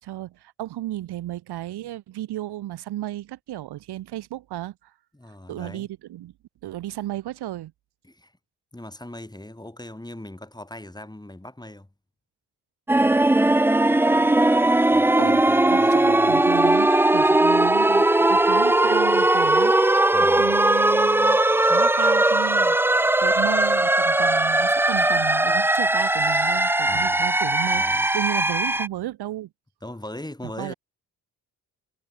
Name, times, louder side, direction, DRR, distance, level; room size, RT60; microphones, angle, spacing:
voice 1, 0.0-4.9 5.5-6.3 6.6-7.7 14.7-14.9 15.2-15.4 15.7-29.5 30.6-30.7, right 14 dB, 85° right, 6.6 m, -33 dB
voice 2, 5.1-5.9 8.0-8.3 8.7-11.9 14.9-16.4 20.1-20.6 26.8-27.2 27.7-28.1 29.8-30.7, left 1 dB, 10° left, 5.2 m, -39 dB
sound 1, 12.9-28.9, right 1 dB, 5° right, 0.5 m, -19 dB
supercardioid pair, 60°, 38 cm